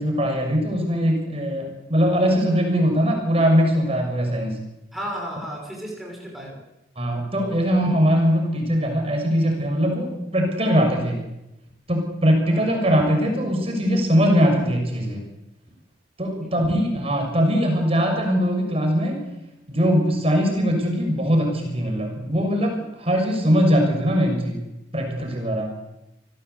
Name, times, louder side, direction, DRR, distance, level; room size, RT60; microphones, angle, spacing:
voice 1, 0.0-4.6 6.9-11.2 11.9-15.2 16.2-19.2 19.7-24.6 24.9-25.7, equal, 30° right, 2 dB, 6.7 m, -21 dB
voice 2, 4.9-6.6 12.4-12.7 16.4-16.6, equal, ahead, -2 dB, 6.1 m, -34 dB
29.5 x 17.5 x 8.4 m, 0.94 s
head